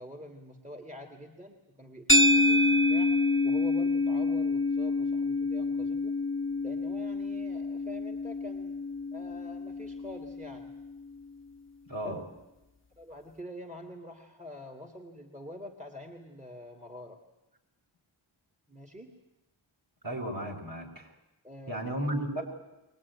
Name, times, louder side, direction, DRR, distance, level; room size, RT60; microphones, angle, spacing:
voice 1, 0.0-3.1 3.4-6.2 6.6-8.7 9.1-10.7 12.0-12.3 13.0-17.2 18.7-19.1 21.4-22.0, left 1 dB, 15° right, 3 dB, 2.2 m, -46 dB
sound 1, 2.1-10.5, left 2 dB, 25° left, 1.2 m, -27 dB
voice 2, 11.9-12.2 20.0-21.1 21.7-22.4, right 1 dB, 45° right, 0 dB, 5.4 m, -34 dB
22.5 x 19.5 x 9.6 m, 0.98 s
wide cardioid pair, 65°, 48 cm